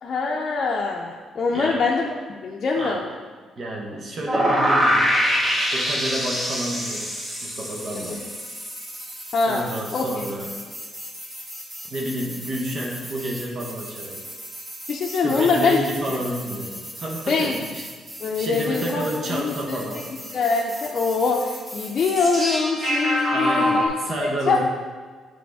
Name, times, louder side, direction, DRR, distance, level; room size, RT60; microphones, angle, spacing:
voice 1, 0.0-2.1 2.4-3.1 8.1-8.2 9.3-10.3 14.9-15.8 16.1-16.2 17.3-17.6 18.2-19.8 20.3-23.9 24.2-24.6, left 4 dB, 50° left, -1 dB, 0.5 m, -23 dB
voice 2, 1.5-1.9 2.7-3.1 3.6-5.2 5.7-7.1 7.4-8.3 9.4-10.6 11.9-14.2 15.2-17.8 18.3-20.0 23.3-24.6, right 1 dB, 50° right, -1 dB, 0.9 m, -30 dB
sound 1, 4.3-23.9, equal, 25° right, 1.5 m, -28 dB
6.0 x 3.5 x 4.7 m, 1.5 s
cardioid pair, 90°, 0 cm